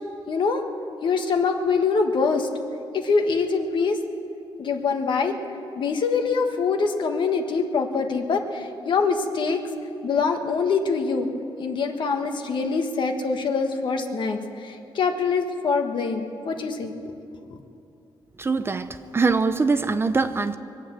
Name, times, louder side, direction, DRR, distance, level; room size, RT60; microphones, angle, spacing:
voice 1, 0.3-0.6 1.0-2.5 2.9-4.0 4.6-5.3 5.8-9.6 10.0-11.3 11.6-16.9 17.4-17.6, left 4 dB, 60° left, 5 dB, 1.4 m, -24 dB
voice 2, 18.4-18.9 19.1-20.6, right 4 dB, 25° right, 10 dB, 0.6 m, -22 dB
23.0 x 8.4 x 7.4 m, 2.7 s
cardioid pair, 120°, 9 cm